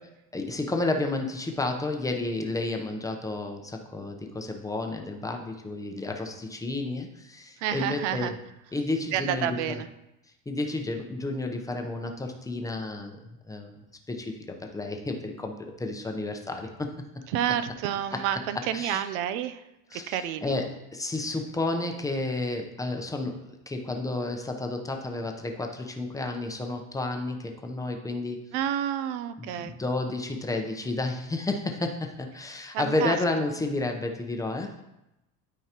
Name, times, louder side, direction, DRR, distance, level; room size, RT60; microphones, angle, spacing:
voice 1, 0.3-8.3 8.7-9.8 10.5-13.8 14.1-15.5 15.8-16.9 18.7-19.0 19.9-20.6 20.9-23.4 23.7-28.4 29.4-34.8, left 2 dB, 10° left, 3 dB, 0.7 m, -31 dB
voice 2, 7.6-8.3 9.1-9.9 17.3-19.6 19.9-20.5 28.5-29.8 32.7-33.2, right 10 dB, 90° right, 12 dB, 0.6 m, -29 dB
12.5 x 4.7 x 2.9 m, 0.91 s
cardioid pair, 140°, 34 cm